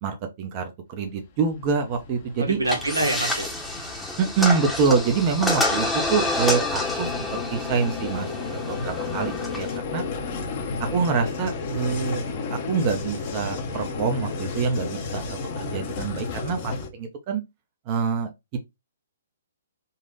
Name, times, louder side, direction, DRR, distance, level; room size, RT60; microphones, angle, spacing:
voice 1, 0.0-2.6 4.2-10.0 10.9-12.2 12.5-17.4 17.9-18.6, right 5 dB, 35° right, 0.9 m, -26 dB
Vehicle, 1.3-16.9, left 4 dB, 40° left, 1.0 m, -33 dB
voice 2, 2.4-3.5, right 2 dB, 90° right, 1.6 m, -25 dB
sound 1, 2.7-9.8, left 2 dB, 5° left, 1.0 m, -28 dB
4.0 x 2.4 x 4.0 m
figure-of-eight pair, 130°, 0 cm